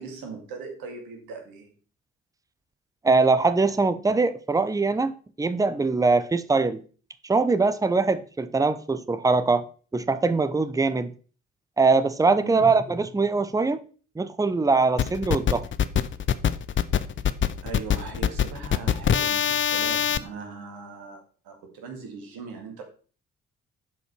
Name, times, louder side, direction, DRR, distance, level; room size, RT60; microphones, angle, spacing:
voice 1, 0.0-1.8 12.4-12.9 17.6-22.8, right 4 dB, 65° right, 2.1 m, -39 dB
voice 2, 3.0-6.8 7.2-9.7 9.9-11.1 11.8-13.8 14.2-15.6, right 3 dB, 10° right, 0.7 m, -22 dB
sound 1, 15.0-20.2, left 9 dB, 30° left, 0.6 m, -23 dB
11.0 x 5.3 x 4.4 m
figure-of-eight pair, 40°, 39 cm